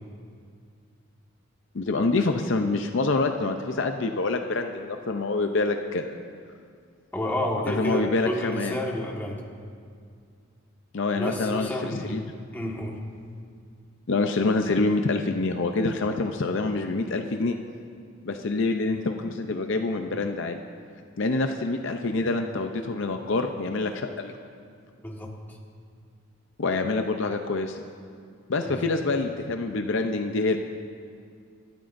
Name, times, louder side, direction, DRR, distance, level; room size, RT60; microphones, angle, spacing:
voice 1, 1.7-6.1 7.7-8.8 10.9-12.2 14.1-17.6 18.3-20.6 21.2-24.3 26.6-27.8 28.5-30.6, left 3 dB, 60° left, 5 dB, 0.6 m, -26 dB
voice 2, 7.1-9.4 11.1-12.2 12.5-13.0 25.0-25.6 28.6-28.8, equal, 10° left, -2 dB, 1.5 m, -30 dB
28.0 x 12.5 x 2.6 m, 2.2 s
head